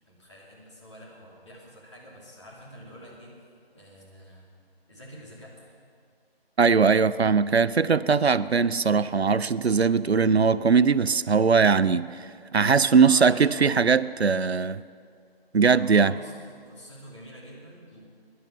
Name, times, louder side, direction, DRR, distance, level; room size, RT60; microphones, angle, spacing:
voice 1, 0.1-3.4 3.7-4.5 4.9-5.7 13.0-13.7 15.8-18.0, equal, 30° left, -4 dB, 2.7 m, -47 dB
voice 2, 6.6-14.8 15.5-16.1, right 5 dB, 90° right, 16 dB, 0.6 m, -20 dB
18.0 x 11.0 x 5.7 m, 2.2 s
figure-of-eight pair, 165°, 31 cm